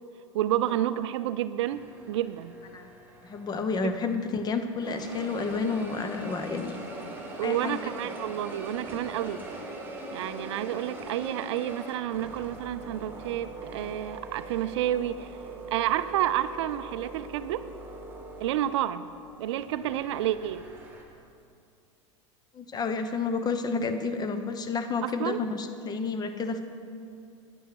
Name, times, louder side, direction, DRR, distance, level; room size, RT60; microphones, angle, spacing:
voice 1, 0.3-2.5 3.8-3.9 7.4-9.4 10.1-15.3 15.7-17.7 18.4-19.1 19.4-20.6 25.0-25.4, right 12 dB, 65° right, 14 dB, 0.4 m, -30 dB
sound 1, 1.6-4.4 4.8-21.0, right 2 dB, 15° right, 1.9 m, -42 dB
voice 2, 3.2-6.8 7.4-7.8 22.5-26.6, left 4 dB, 25° left, 8 dB, 0.8 m, -30 dB
9.4 x 8.7 x 4.9 m, 2.4 s
hypercardioid pair, 90°, 16 cm